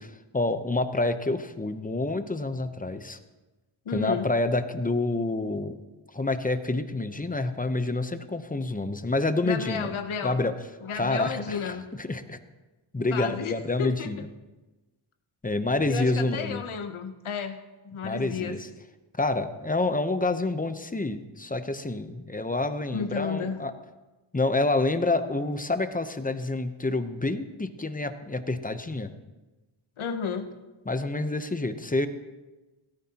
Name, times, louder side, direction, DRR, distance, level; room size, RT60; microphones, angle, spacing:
voice 1, 0.0-3.2 3.9-5.8 6.1-9.9 10.2-10.5 10.9-12.4 12.9-14.3 15.4-16.6 18.0-18.6 19.2-23.7 24.3-29.1 30.9-32.1, left 2 dB, 15° left, 9 dB, 0.8 m, -28 dB
voice 2, 3.9-4.3 9.4-10.4 10.8-11.9 13.1-14.1 15.9-17.6 17.8-18.6 22.9-23.6 30.0-30.5, left 6 dB, 75° left, 7 dB, 0.9 m, -32 dB
17.0 x 13.5 x 2.9 m, 1.1 s
wide cardioid pair, 95°, 49 cm